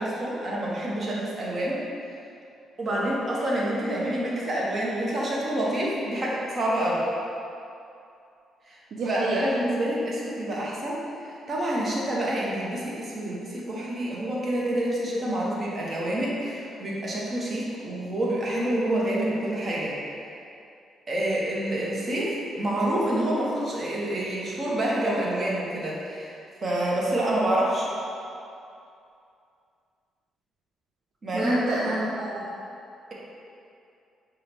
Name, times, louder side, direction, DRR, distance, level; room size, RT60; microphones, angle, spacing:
voice 1, 0.0-1.8 2.8-7.1 8.7-8.8 9.1-20.0 21.1-26.3 26.6-27.9 31.2-31.8, right 1 dB, 35° right, -5 dB, 0.9 m, -27 dB
voice 2, 8.9-9.5 31.3-32.5, right 2 dB, 65° right, -4 dB, 0.4 m, -28 dB
5.5 x 2.3 x 3.4 m, 2.6 s
cardioid pair, 90°, 0 cm